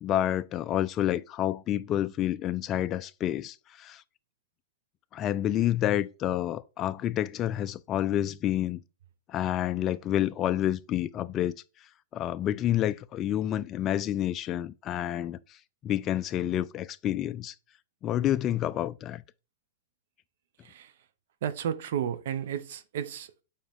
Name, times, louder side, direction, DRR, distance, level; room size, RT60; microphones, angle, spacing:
voice 1, 0.0-4.0 5.1-8.8 9.3-11.5 12.1-15.6 15.8-17.5 18.0-19.2, left 12 dB, 30° left, 0.3 m, -29 dB
voice 2, 21.4-23.4, right 9 dB, 65° right, 0.8 m, -33 dB
7.3 x 4.4 x 3.6 m
hypercardioid pair, 130°, 0 cm